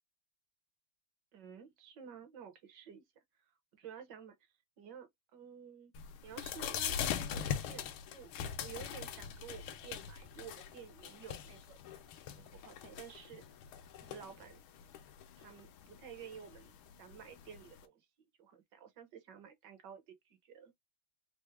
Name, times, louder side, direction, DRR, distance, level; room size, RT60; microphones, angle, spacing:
voice 1, 1.3-3.0 3.7-4.4 4.8-5.9 6.2-7.9 8.1-8.3 8.6-11.8 12.3-13.4 14.0-14.6 15.4-16.7 17.0-18.1 18.4-20.7, right 8 dB, 60° right, 1.4 m, -52 dB
sound 1, 5.9-17.8, left 9 dB, 75° left, 1.4 m, -42 dB
4.5 x 2.1 x 3.2 m
omnidirectional pair, 2.4 m